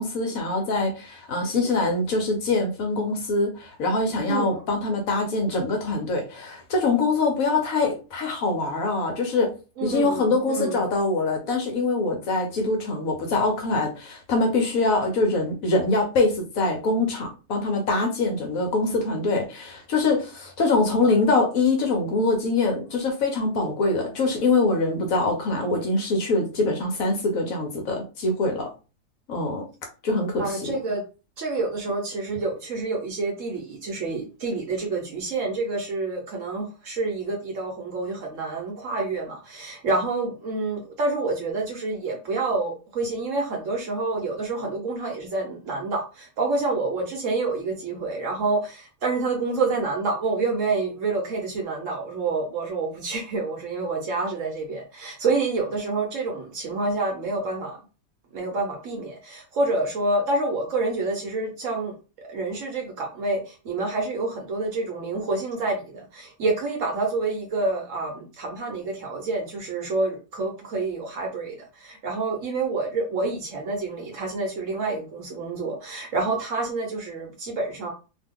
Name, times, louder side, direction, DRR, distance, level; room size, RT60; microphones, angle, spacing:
voice 1, 0.0-9.5 9.8-28.7 29.3-29.7 30.0-30.7, left 3 dB, 65° left, 3 dB, 1.0 m, -24 dB
voice 2, 4.3-4.6 9.8-10.8 30.4-31.0 31.4-57.8 58.3-61.9 62.3-77.9, right 3 dB, 60° right, 1 dB, 1.0 m, -28 dB
2.8 x 2.2 x 3.5 m, 0.33 s
omnidirectional pair, 1.8 m